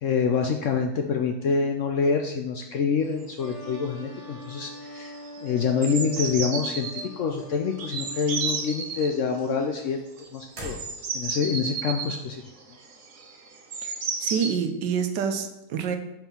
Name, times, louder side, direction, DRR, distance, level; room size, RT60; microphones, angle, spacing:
voice 1, 0.0-5.1 5.4-10.0 10.3-10.8 11.1-12.4, left 5 dB, 70° left, 3 dB, 0.7 m, -26 dB
sound 1, 3.2-3.3 3.5-3.9 4.2-4.5 4.7-7.0 7.8-9.1 10.2-14.5, right 5 dB, 55° right, 1.2 m, -33 dB
sound 2, 3.4-9.7, equal, 20° left, 1.4 m, -44 dB
sound 3, 6.2-7.4 7.8-8.3 8.6-11.4, equal, 40° right, 1.8 m, -44 dB
voice 2, 14.2-16.0, right 7 dB, 90° right, 7 dB, 1.4 m, -27 dB
5.4 x 4.5 x 5.7 m, 0.93 s
omnidirectional pair, 1.8 m